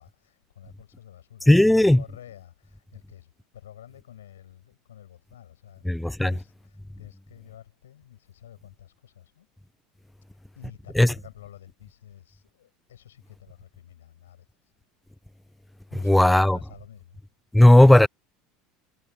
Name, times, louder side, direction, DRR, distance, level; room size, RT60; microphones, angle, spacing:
voice 1, 0.0-5.9 6.2-9.5 10.6-14.7 15.9-17.2, left 11 dB, 75° left, 7.9 m, -49 dB
voice 2, 1.5-2.0 5.9-6.3 11.0-11.1 16.1-16.6 17.5-18.1, left 1 dB, 5° left, 0.4 m, -15 dB
figure-of-eight pair, 70°, 0 cm